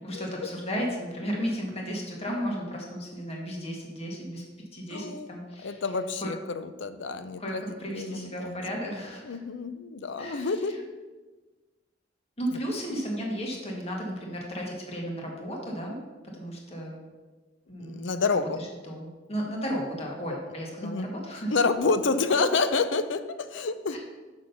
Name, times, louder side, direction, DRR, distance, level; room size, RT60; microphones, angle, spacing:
voice 1, 0.0-4.4 4.7-5.9 6.2-6.3 7.4-9.4 10.2-10.8 12.4-16.0 16.3-17.0 17.7-21.5 23.9-24.0, equal, 35° left, -1 dB, 1.7 m, -34 dB
voice 2, 4.9-5.3 5.6-7.6 7.9-8.6 9.2-10.7 17.8-18.6 20.8-21.1 21.5-24.0, left 4 dB, 85° left, 11 dB, 0.6 m, -28 dB
6.4 x 6.2 x 5.5 m, 1.3 s
head